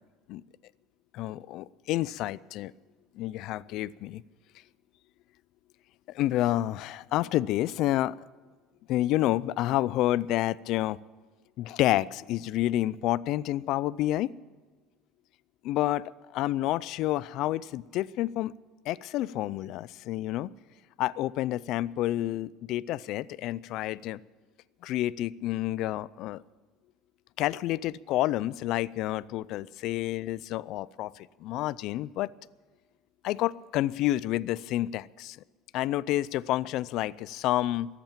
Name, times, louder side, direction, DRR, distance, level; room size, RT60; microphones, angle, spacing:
voice 1, 1.1-2.7 3.2-4.2 6.1-8.2 8.9-11.0 11.6-14.3 15.6-18.5 18.9-20.5 21.0-24.2 24.8-26.4 27.4-32.3 33.2-35.4 35.7-37.9, left 15 dB, 50° left, 19 dB, 0.4 m, -29 dB
22.0 x 8.2 x 7.3 m, 1.4 s
cardioid pair, 160°, 0 cm